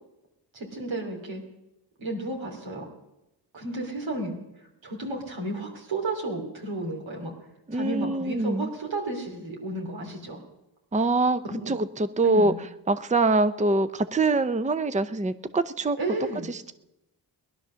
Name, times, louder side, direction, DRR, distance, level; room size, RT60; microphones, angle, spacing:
voice 1, 0.5-1.4 2.0-2.9 3.5-4.4 4.8-7.3 7.7-10.4 11.5-11.7 12.2-12.6 16.0-16.5, right 2 dB, 90° right, 1 dB, 3.0 m, -32 dB
voice 2, 7.7-8.7 10.9-16.0 16.5-16.7, right 2 dB, 15° right, 12 dB, 0.6 m, -24 dB
18.0 x 11.0 x 6.3 m, 0.93 s
cardioid pair, 55°, 45 cm